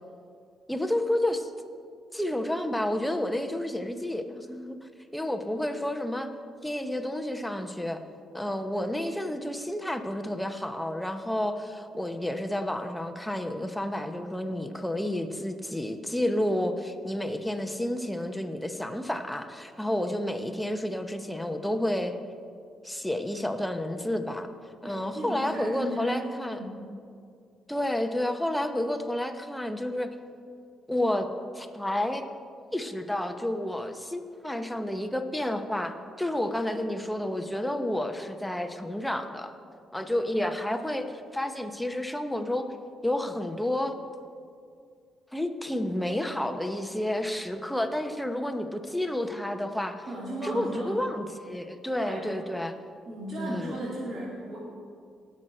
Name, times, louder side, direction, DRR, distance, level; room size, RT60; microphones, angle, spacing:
voice 1, 0.7-1.5 2.1-4.8 5.1-6.3 6.6-8.0 8.3-22.1 22.8-24.5 24.8-26.7 27.7-30.1 30.9-31.3 31.5-32.2 32.7-39.5 39.9-42.7 43.0-43.9 45.3-50.0 50.4-52.7 53.4-53.8, left 1 dB, 5° left, 6 dB, 0.9 m, -30 dB
voice 2, 24.8-26.2 26.5-26.8 50.1-50.9 52.0-52.3 53.0-54.6, right 1 dB, 45° right, -7 dB, 2.8 m, -35 dB
18.5 x 6.4 x 4.4 m, 2.3 s
cardioid pair, 90°, 0 cm